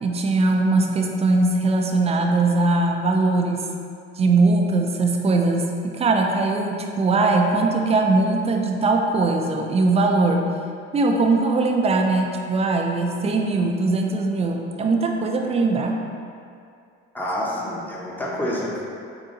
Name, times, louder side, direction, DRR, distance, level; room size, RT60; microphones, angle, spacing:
voice 1, 0.0-3.6 4.2-10.5 10.9-16.0, right 3 dB, 20° right, 2 dB, 0.4 m, -20 dB
voice 2, 17.1-18.9, left 1 dB, 5° left, -5 dB, 0.8 m, -28 dB
3.9 x 2.7 x 3.9 m, 2.4 s
supercardioid pair, 95°, 29 cm